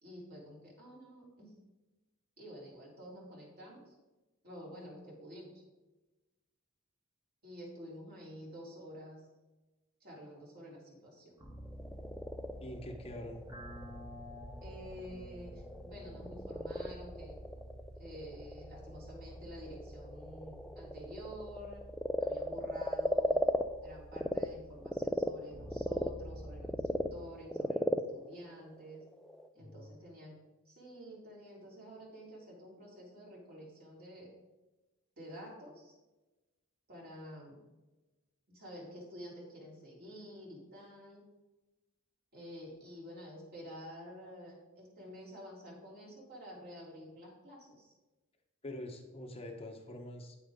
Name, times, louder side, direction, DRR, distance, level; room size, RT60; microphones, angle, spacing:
voice 1, 0.0-1.5 2.4-4.0 4.4-5.6 7.4-9.3 10.0-11.4 14.6-17.4 17.9-21.8 22.2-29.0 29.5-30.4 30.7-34.3 35.2-35.9 36.9-37.6 38.5-41.2 42.3-47.9, equal, 50° right, -4 dB, 3.5 m, -49 dB
sound 1, 11.4-27.2, equal, 20° right, 1.4 m, -50 dB
Frog, 11.6-24.5 24.8-29.5, equal, 5° left, 0.4 m, -36 dB
voice 2, 12.6-13.4 29.6-29.9 48.6-50.4, left 1 dB, 30° left, 4 dB, 0.9 m, -45 dB
9.1 x 9.1 x 3.6 m, 1.1 s
head